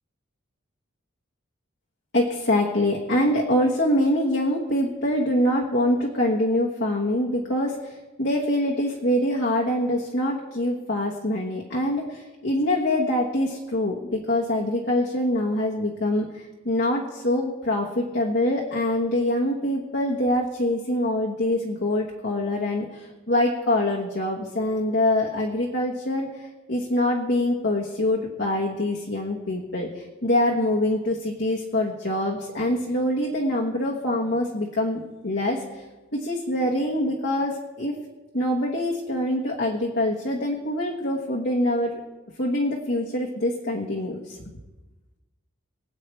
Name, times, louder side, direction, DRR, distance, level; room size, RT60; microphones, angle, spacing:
voice 1, 2.1-35.8 36.1-37.9 38.3-42.0 42.4-44.4, left 1 dB, 55° left, -2 dB, 1.4 m, -24 dB
24.0 x 8.4 x 3.3 m, 1.1 s
head